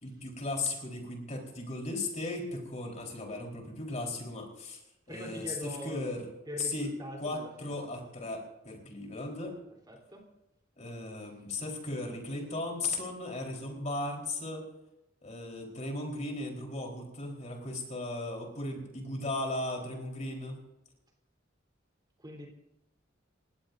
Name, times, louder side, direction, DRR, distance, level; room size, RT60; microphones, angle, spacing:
voice 1, 0.0-4.8 5.1-6.3 6.6-6.9 7.2-9.6 10.8-14.7 15.2-20.6, left 2 dB, 40° left, 0 dB, 4.2 m, -36 dB
voice 2, 5.1-6.0 6.5-7.8 9.9-10.2 22.2-22.5, equal, 25° right, 1 dB, 3.6 m, -42 dB
30.0 x 17.0 x 2.7 m, 0.90 s
head